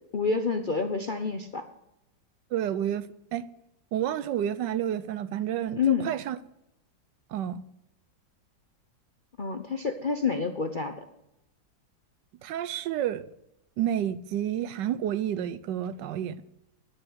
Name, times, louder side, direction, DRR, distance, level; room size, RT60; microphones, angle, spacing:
voice 1, 0.1-1.6 5.7-6.1 9.4-11.0, left 5 dB, 50° left, 0.6 m, -28 dB
voice 2, 2.5-3.5 3.9-6.4 7.3-7.6 12.4-13.3 13.8-16.4, right 10 dB, 75° right, 1.3 m, -30 dB
9.8 x 9.8 x 7.9 m
omnidirectional pair, 2.0 m